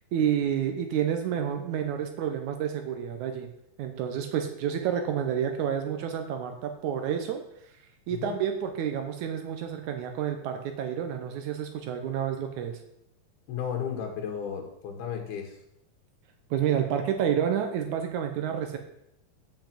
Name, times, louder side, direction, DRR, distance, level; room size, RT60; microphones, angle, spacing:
voice 1, 0.1-3.5 3.8-7.4 8.1-12.8 16.5-18.8, right 9 dB, 75° right, 6 dB, 1.7 m, -29 dB
voice 2, 13.5-15.5, left 8 dB, 85° left, 2 dB, 3.2 m, -34 dB
7.1 x 5.7 x 7.5 m, 0.78 s
omnidirectional pair, 4.3 m